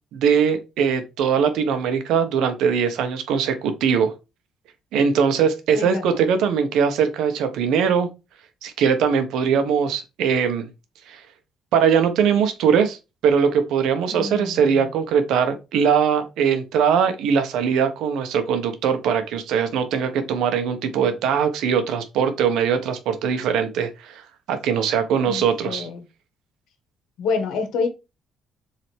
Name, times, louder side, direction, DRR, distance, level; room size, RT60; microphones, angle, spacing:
voice 1, 0.1-4.1 4.9-8.1 8.6-10.7 11.1-11.2 11.7-13.0 13.2-24.2 24.5-25.9, right 7 dB, 80° right, 1.3 m, -21 dB
voice 2, 5.7-6.2 14.1-14.9 25.2-26.1 27.2-27.9, left 5 dB, 75° left, 1.6 m, -28 dB
7.6 x 4.0 x 3.4 m
cardioid pair, 160°, 0 cm